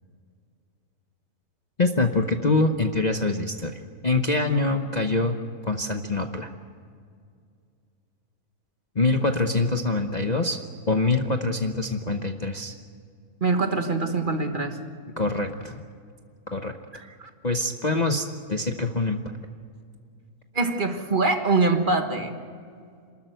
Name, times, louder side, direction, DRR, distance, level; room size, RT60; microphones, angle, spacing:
voice 1, 1.8-5.4 5.6-6.5 8.9-10.6 10.9-12.7 15.2-15.8 16.5-16.7 17.4-19.2, left 3 dB, 35° left, 4 dB, 0.9 m, -24 dB
voice 2, 13.4-14.8 17.2-17.3 20.5-22.3, right 3 dB, 35° right, 6 dB, 1.5 m, -24 dB
27.5 x 13.0 x 9.3 m, 2.2 s
omnidirectional pair, 1.6 m